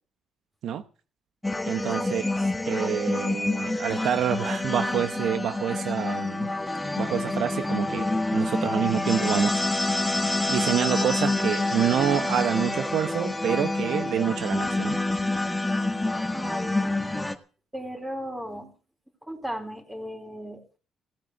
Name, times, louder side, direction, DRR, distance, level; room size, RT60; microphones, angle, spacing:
sound 1, 1.4-17.3, left 2 dB, 10° left, 1.5 m, -27 dB
voice 1, 1.7-2.3 2.6-6.5 7.0-9.6 10.5-15.0, right 9 dB, 75° right, 0.9 m, -27 dB
voice 2, 16.3-16.9 17.7-18.7 19.2-20.8, equal, 10° right, 4.0 m, -36 dB
17.0 x 8.1 x 7.7 m
cardioid pair, 90°, 0 cm